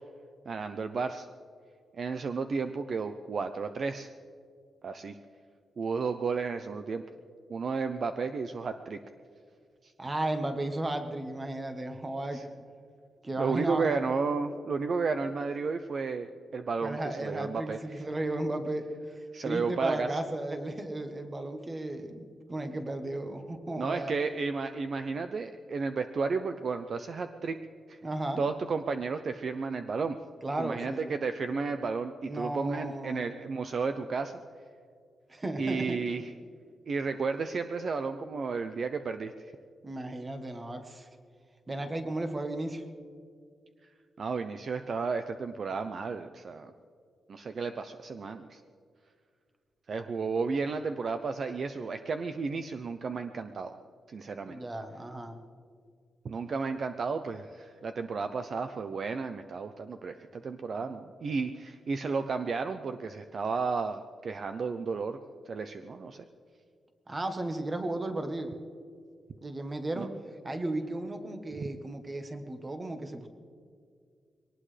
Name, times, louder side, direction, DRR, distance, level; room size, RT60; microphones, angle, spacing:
voice 1, 0.5-1.3 2.0-4.1 4.8-5.2 5.8-7.0 7.5-9.0 9.8-9.9 12.3-12.4 13.4-18.1 19.3-20.2 23.8-27.6 27.9-28.0 28.4-30.2 30.6-34.3 35.6-36.3 36.9-39.3 44.2-46.7 47.3-48.6 49.9-53.7 54.1-54.6 56.2-65.2 65.5-66.2 70.0-70.1, right 4 dB, 40° right, 8 dB, 0.6 m, -33 dB
voice 2, 10.0-12.4 13.2-13.9 16.8-18.9 19.4-24.1 28.0-28.4 30.4-31.1 32.3-33.3 35.3-36.0 39.8-41.1 41.7-42.8 54.4-55.4 67.1-68.5 69.4-70.1 70.4-73.3, right 2 dB, 20° right, 6 dB, 1.2 m, -34 dB
22.5 x 18.5 x 3.3 m, 2.2 s
wide cardioid pair, 170°, 0 cm